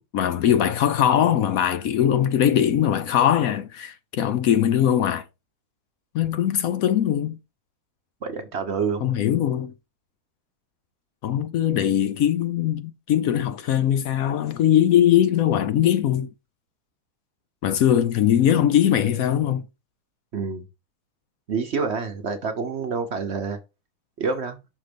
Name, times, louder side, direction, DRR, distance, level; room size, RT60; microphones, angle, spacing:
voice 1, 0.1-5.2 6.1-7.4 9.0-9.7 11.2-16.3 17.6-19.7, left 10 dB, 70° left, 1.0 m, -21 dB
voice 2, 8.2-9.2 20.3-20.6 21.5-23.6 24.2-24.6, right 5 dB, 50° right, 1.0 m, -27 dB
6.1 x 3.8 x 5.0 m
omnidirectional pair, 1.7 m